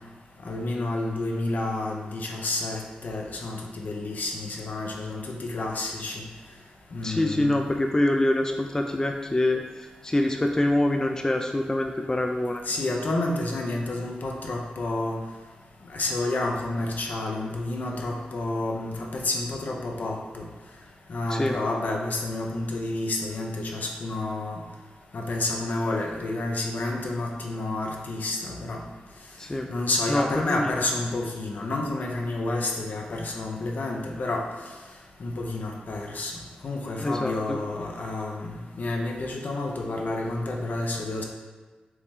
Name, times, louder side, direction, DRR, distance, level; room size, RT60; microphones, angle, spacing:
voice 1, 0.4-6.2 6.9-7.6 12.7-15.2 15.9-20.5 21.1-24.6 25.1-28.8 29.7-34.5 35.2-36.3 36.6-41.2, left 2 dB, 65° left, 0 dB, 0.7 m, -30 dB
voice 2, 7.0-9.6 10.0-12.6 21.3-21.6 29.4-29.7 30.1-30.7 37.0-37.6, left 1 dB, 20° left, 3 dB, 0.4 m, -25 dB
4.6 x 3.2 x 3.6 m, 1.3 s
cardioid pair, 45°, 3 cm